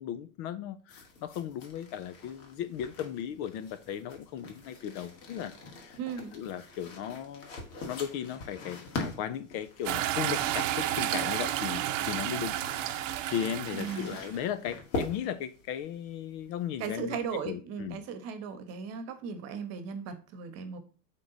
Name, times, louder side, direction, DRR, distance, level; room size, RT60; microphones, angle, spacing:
voice 1, 0.0-6.0 6.3-7.6 7.8-17.2 17.4-18.0, left 9 dB, 50° left, 0.6 m, -36 dB
sound 1, 0.9-17.4, left 3 dB, 70° left, 2.1 m, -43 dB
voice 2, 6.0-6.3 13.7-14.1 16.8-20.8, right 6 dB, 40° right, 1.1 m, -37 dB
sound 2, 9.8-14.3, right 13 dB, 80° right, 0.7 m, -31 dB
7.7 x 3.8 x 4.0 m
supercardioid pair, 135°, 37 cm